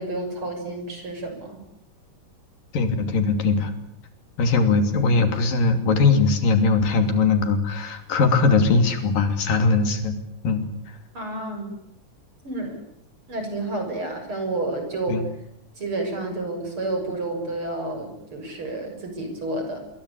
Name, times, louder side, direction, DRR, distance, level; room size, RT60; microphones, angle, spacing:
voice 1, 0.0-1.6 11.1-11.7 12.4-12.8 13.3-15.2 15.8-19.8, right 2 dB, 40° right, 5 dB, 7.2 m, -30 dB
voice 2, 2.7-3.7 4.4-10.1 10.4-10.6 15.1-15.2, left 4 dB, 85° left, 8 dB, 4.6 m, -20 dB
27.5 x 22.5 x 8.6 m, 0.76 s
omnidirectional pair, 3.8 m